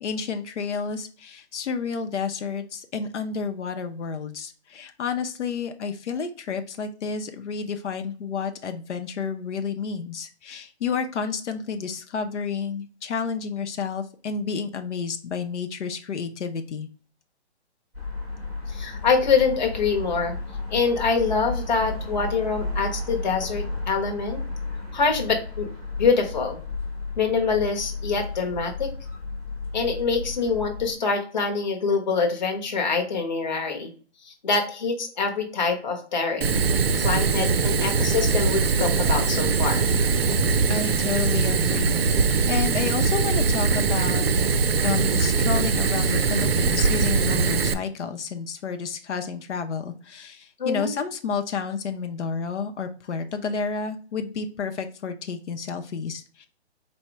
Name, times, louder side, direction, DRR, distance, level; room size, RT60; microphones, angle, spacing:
voice 1, 0.0-16.9 40.7-42.0 42.5-44.2 44.6-56.5, left 5 dB, 90° left, 6 dB, 0.7 m, -30 dB
sound 1, 17.9-30.9, left 3 dB, 10° right, 0.6 m, -33 dB
voice 2, 18.7-20.4 20.7-24.4 24.9-25.7 26.0-26.6 27.2-28.9 29.7-33.9 34.2-36.6 37.0-39.8 50.6-50.9, left 5 dB, 40° left, 3 dB, 1.0 m, -25 dB
Fire, 36.4-47.7, right 5 dB, 60° right, 0.5 m, -22 dB
4.3 x 2.1 x 4.5 m, 0.40 s
hypercardioid pair, 175°, 34 cm